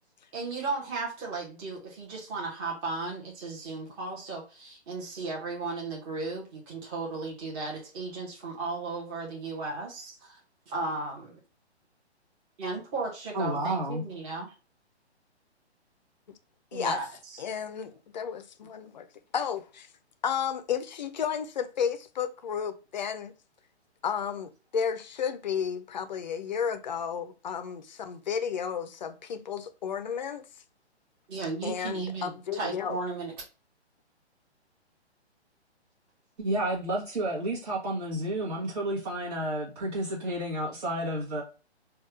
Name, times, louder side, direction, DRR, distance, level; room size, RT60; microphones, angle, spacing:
voice 1, 0.3-10.4 10.7-11.4 12.6-14.5 16.7-17.4 31.3-33.3, right 3 dB, 25° right, 1.1 m, -35 dB
voice 2, 13.3-14.0 36.4-41.4, right 1 dB, 45° right, 1.4 m, -31 dB
voice 3, 17.4-19.1 19.3-19.9 20.2-23.3 24.0-30.5 31.6-33.0, left 7 dB, 40° left, 0.5 m, -32 dB
4.4 x 2.4 x 3.1 m
figure-of-eight pair, 130°, 34 cm